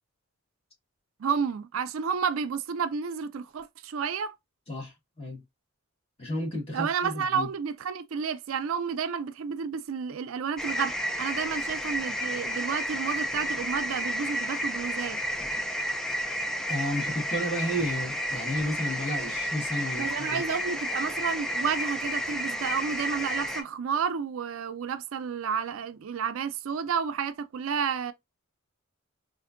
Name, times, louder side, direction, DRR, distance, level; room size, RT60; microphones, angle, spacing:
voice 1, 1.2-4.4 6.7-15.2 20.0-28.1, right 6 dB, 75° right, 0.4 m, -31 dB
voice 2, 4.7-5.4 6.2-7.5 16.7-20.4, equal, 25° left, 1.5 m, -32 dB
sound 1, 10.6-23.6, equal, ahead, 0.4 m, -31 dB
4.3 x 2.6 x 2.5 m
head